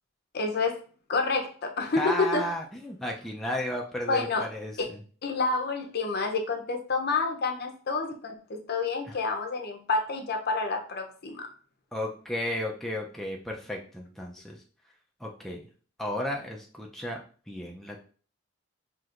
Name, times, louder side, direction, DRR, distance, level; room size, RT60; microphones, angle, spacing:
voice 1, 0.3-0.8 1.1-2.5 4.1-4.5 4.8-4.9 5.2-11.5, left 3 dB, 50° left, 3 dB, 0.6 m, -28 dB
voice 2, 2.0-5.0 9.1-9.2 11.9-14.6 15.2-15.6 16.0-17.2 17.5-18.0, left 1 dB, ahead, -1 dB, 0.4 m, -33 dB
5.9 x 2.9 x 2.5 m, 0.42 s
head